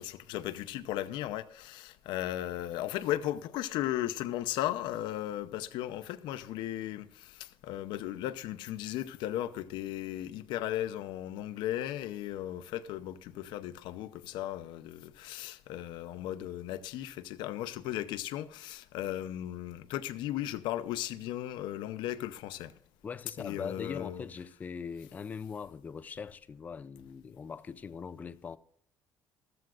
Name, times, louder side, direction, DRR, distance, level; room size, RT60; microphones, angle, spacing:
voice 1, 0.0-22.7 23.4-24.3, left 13 dB, 85° left, 0.7 m, -36 dB
voice 2, 23.0-28.6, left 6 dB, 20° left, 0.4 m, -41 dB
14.5 x 13.5 x 2.4 m
cardioid pair, 175°, 8 cm